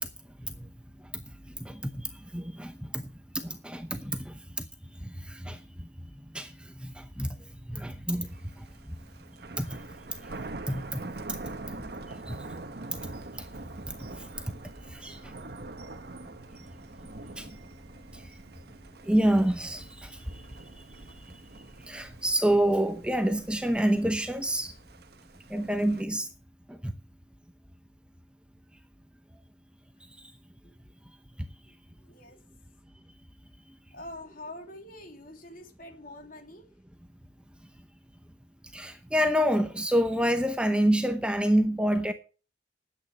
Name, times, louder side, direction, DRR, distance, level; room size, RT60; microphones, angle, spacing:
voice 1, 1.6-3.0 3.4-4.4 5.0-5.9 6.3-7.3 7.6-8.3 8.6-8.7 9.6-9.9 10.7-11.0 12.3-12.4 12.9-13.0 13.3-13.5 13.9-14.3 14.9-15.3 17.4-17.5 18.1-18.3 19.0-20.6 21.8-24.7 25.5-26.3 26.7-26.9 31.4-31.5 38.7-42.1, right 1 dB, 5° right, 0.8 m, -28 dB
Thunder, 8.2-26.0, right 2 dB, 60° right, 1.1 m, -44 dB
voice 2, 32.0-32.4 33.9-36.6, left 1 dB, 50° left, 3.2 m, -45 dB
11.5 x 9.0 x 6.2 m
head